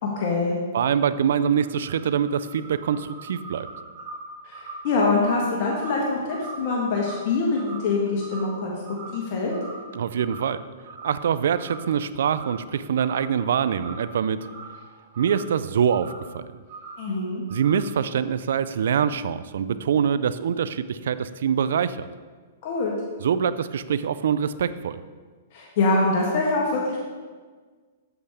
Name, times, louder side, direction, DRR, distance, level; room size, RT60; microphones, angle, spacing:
voice 1, 0.0-0.6 4.4-8.7 9.1-9.5 17.0-17.4 22.6-22.9 25.5-27.0, left 3 dB, 50° left, -2 dB, 1.4 m, -24 dB
voice 2, 0.7-3.7 9.9-10.6 11.0-14.4 15.2-16.4 17.5-22.1 23.2-25.0, right 8 dB, 75° right, 14 dB, 0.4 m, -24 dB
sound 1, 1.1-8.6 8.8-9.2 9.5-10.6 10.8-11.2 11.5-12.0 12.2-13.4 13.6-15.6 15.9-16.3 16.7-17.1 17.5-18.0, right 3 dB, 45° right, 2.2 m, -41 dB
8.0 x 7.8 x 3.5 m, 1.5 s
hypercardioid pair, 140°, 0 cm